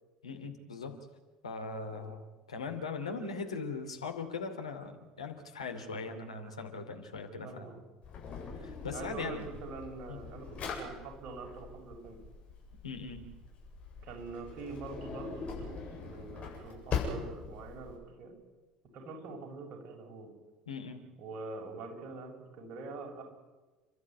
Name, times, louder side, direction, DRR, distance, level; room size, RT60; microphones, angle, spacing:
voice 1, 0.2-1.0 1.4-7.8 8.5-9.5 10.1-10.2 12.8-13.3 20.7-21.0, left 4 dB, 80° left, 4 dB, 2.6 m, -40 dB
voice 2, 7.4-7.7 8.9-12.2 14.0-18.4 18.9-20.3 21.2-23.2, right 3 dB, 50° right, 1 dB, 6.9 m, -44 dB
Drawer open or close, 8.0-18.0, left 5 dB, 40° left, 7.8 m, -41 dB
30.0 x 12.5 x 9.7 m, 1.2 s
figure-of-eight pair, 65°, 3 cm